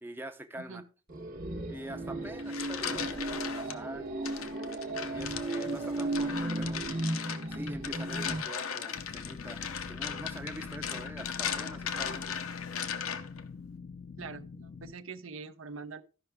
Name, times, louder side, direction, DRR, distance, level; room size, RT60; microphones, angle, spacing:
voice 1, 0.0-0.8 1.7-4.6 5.1-6.8 7.5-12.4, right 1 dB, 10° right, 0.6 m, -44 dB
sound 1, 1.1-8.4, right 2 dB, 40° right, 1.0 m, -35 dB
sound 2, 2.2-3.8 4.3-13.4, left 7 dB, 85° left, 0.8 m, -38 dB
sound 3, 8.9-14.9, left 4 dB, 40° left, 0.4 m, -44 dB
voice 2, 14.2-16.0, right 5 dB, 75° right, 0.7 m, -44 dB
14.0 x 5.7 x 3.4 m
head